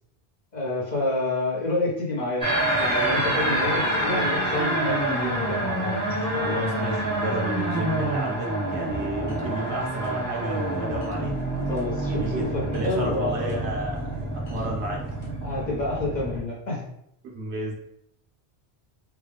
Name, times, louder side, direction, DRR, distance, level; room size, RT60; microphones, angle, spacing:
voice 1, 0.5-2.5 2.8-6.0 11.7-13.6 15.4-16.9, left 2 dB, 45° left, -4 dB, 1.1 m, -28 dB
sound 1, 2.4-16.4, right 1 dB, 5° left, 1.1 m, -27 dB
voice 2, 6.2-11.4 12.1-15.0 17.2-17.8, right 1 dB, 80° right, -1 dB, 1.2 m, -32 dB
sound 2, 8.7-15.6, left 3 dB, 70° left, 1.2 m, -47 dB
3.5 x 2.3 x 3.3 m, 0.75 s
omnidirectional pair, 1.1 m